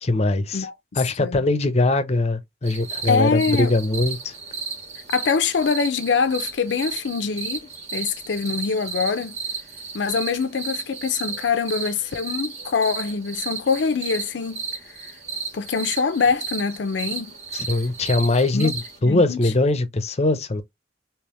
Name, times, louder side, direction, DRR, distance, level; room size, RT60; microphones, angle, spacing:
voice 1, 0.0-0.7 1.0-4.3 17.5-20.6, left 2 dB, 35° left, 0.6 m, -21 dB
voice 2, 0.5-1.4 3.1-3.7 5.1-7.6 7.9-9.3 9.9-14.6 15.0-15.1 15.5-17.3 18.5-18.7 19.0-19.5, left 5 dB, 80° left, 0.5 m, -24 dB
sound 1, 2.6-19.0, right 5 dB, 40° right, 1.7 m, -34 dB
3.4 x 3.0 x 3.0 m
head